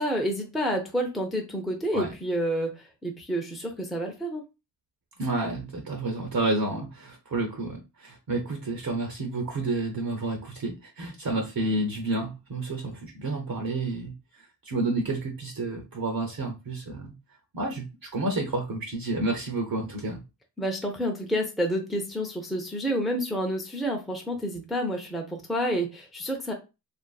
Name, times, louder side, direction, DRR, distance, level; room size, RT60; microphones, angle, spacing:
voice 1, 0.0-4.4 20.6-26.5, equal, ahead, 1 dB, 0.6 m, -29 dB
voice 2, 5.2-17.1 17.5-20.2, right 2 dB, 55° right, 2 dB, 0.7 m, -30 dB
2.5 x 2.5 x 2.3 m, 0.27 s
cardioid pair, 45°, 42 cm